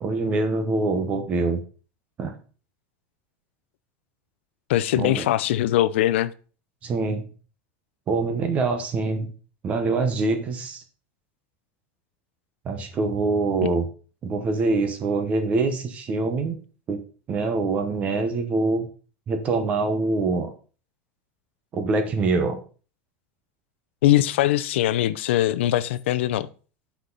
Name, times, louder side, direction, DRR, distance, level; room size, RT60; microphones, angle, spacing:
voice 1, 0.0-1.6 2.2-2.4 5.0-5.2 6.8-7.3 8.1-9.3 9.6-10.8 12.6-13.9 14.2-16.6 16.9-17.0 17.3-18.9 19.3-20.5 21.7-22.6, right 3 dB, 20° right, 0.9 m, -24 dB
voice 2, 4.7-6.3 24.0-26.5, left 13 dB, 90° left, 0.6 m, -21 dB
8.2 x 5.8 x 4.0 m
supercardioid pair, 180°, 6 cm